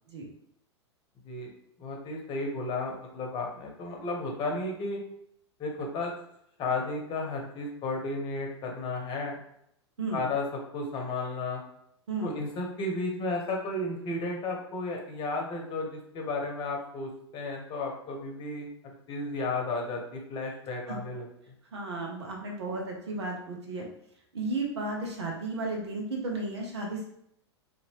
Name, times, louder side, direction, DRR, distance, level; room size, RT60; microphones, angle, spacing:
voice 1, 1.8-5.0 5.6-6.1 6.6-9.4 10.1-11.6 12.2-21.5, left 2 dB, 35° left, 0 dB, 0.9 m, -33 dB
voice 2, 21.7-23.8 24.3-27.1, right 2 dB, 75° right, 0 dB, 0.8 m, -33 dB
2.8 x 2.5 x 2.9 m, 0.72 s
hypercardioid pair, 100°, 15 cm